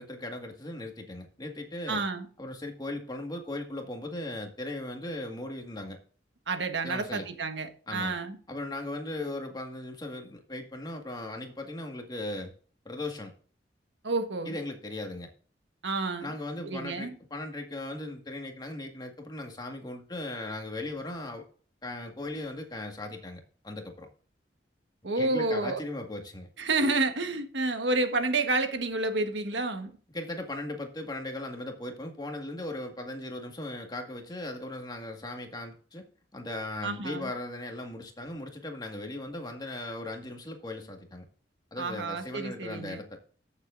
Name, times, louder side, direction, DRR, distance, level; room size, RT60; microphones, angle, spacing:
voice 1, 0.0-2.0 2.4-6.0 6.8-7.3 7.9-8.2 8.5-12.5 12.9-13.3 14.5-15.3 16.2-21.5 21.8-24.1 25.2-26.5 30.1-36.0 36.3-41.2 41.7-43.2, left 2 dB, 25° left, 1.8 m, -38 dB
voice 2, 1.9-2.3 6.5-8.4 14.0-14.6 15.8-16.3 16.6-17.1 25.0-25.8 26.6-29.9 36.8-37.3 41.8-43.0, right 3 dB, 85° right, 1.4 m, -29 dB
14.5 x 7.2 x 2.6 m
head